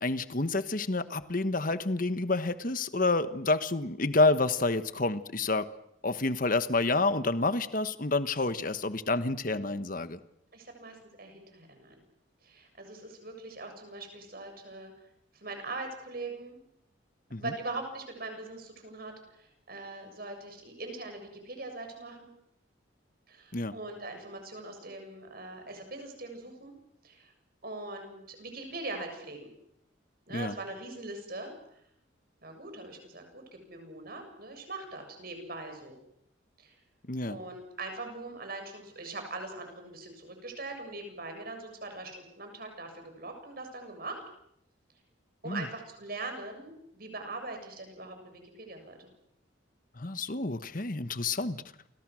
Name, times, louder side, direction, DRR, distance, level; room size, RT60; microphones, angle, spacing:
voice 1, 0.0-5.7 6.0-10.2 17.3-17.4 23.5-23.7 30.3-30.5 37.1-37.4 45.5-45.7 50.0-51.6, left 3 dB, 45° left, 12 dB, 1.2 m, -29 dB
voice 2, 10.5-12.0 12.4-14.9 15.3-16.6 17.4-22.3 23.3-26.7 27.0-27.3 27.6-29.5 30.3-31.5 32.4-36.0 36.6-36.8 37.3-44.2 45.4-49.1, right 2 dB, 50° right, 5 dB, 7.3 m, -41 dB
29.5 x 25.0 x 6.3 m, 0.76 s
head